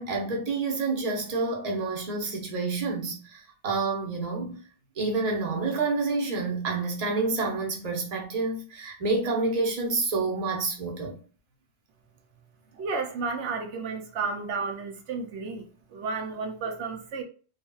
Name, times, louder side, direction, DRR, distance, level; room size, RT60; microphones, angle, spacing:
voice 1, 0.0-4.6 5.0-11.2, right 3 dB, 40° right, 0.9 m, -28 dB
voice 2, 12.8-17.2, right 4 dB, 85° right, 0.9 m, -32 dB
3.3 x 2.8 x 2.3 m
omnidirectional pair, 1.2 m